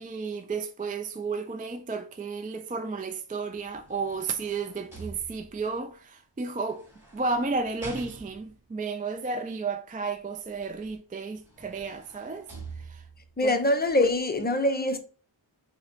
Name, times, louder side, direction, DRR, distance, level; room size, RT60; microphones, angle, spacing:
voice 1, 0.0-6.9 7.1-12.5 12.8-13.0 13.4-13.5, right 4 dB, 20° right, 0.3 m, -33 dB
sound 1, 3.5-5.8 6.6-8.6 10.8-10.9 11.3-13.3 13.9-14.0, right 3 dB, 5° right, 2.5 m, -46 dB
voice 2, 13.4-15.0, left 1 dB, 20° left, 0.6 m, -24 dB
5.2 x 2.2 x 4.4 m
wide cardioid pair, 120°, 47 cm